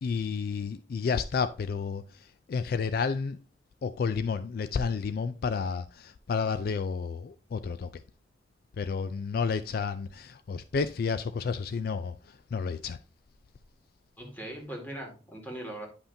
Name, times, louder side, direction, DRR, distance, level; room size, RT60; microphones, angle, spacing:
voice 1, 0.0-3.4 3.8-8.0 8.8-13.0, left 5 dB, 60° left, 0.3 m, -31 dB
voice 2, 14.2-15.9, right 1 dB, 10° left, 2.0 m, -40 dB
10.0 x 5.6 x 2.6 m
head